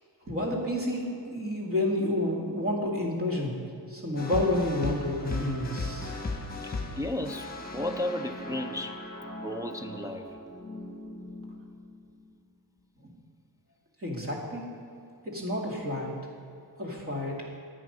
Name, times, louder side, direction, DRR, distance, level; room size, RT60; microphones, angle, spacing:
voice 1, 0.3-3.6 3.9-6.1 14.0-14.7 15.2-16.2 16.8-17.4, left 1 dB, 35° right, -2 dB, 2.3 m, -30 dB
sound 1, 4.2-12.3, left 2 dB, 25° left, 1.3 m, -38 dB
voice 2, 6.6-8.9 9.4-10.3, left 1 dB, 10° right, 3 dB, 0.4 m, -34 dB
10.5 x 9.0 x 5.4 m, 2.5 s
wide cardioid pair, 130°, 39 cm